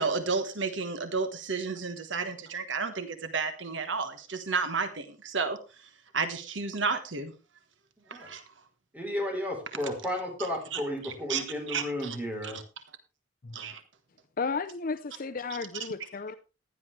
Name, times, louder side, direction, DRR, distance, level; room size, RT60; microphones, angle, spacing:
voice 1, 0.0-5.6 6.1-7.3 8.1-8.4 10.4-12.2 12.4-12.6 13.5-13.8, right 4 dB, 70° right, 1.3 m, -32 dB
voice 2, 8.9-12.6, left 1 dB, 10° right, 3.8 m, -33 dB
voice 3, 14.4-16.3, left 4 dB, 45° left, 0.6 m, -33 dB
15.5 x 10.5 x 3.3 m
head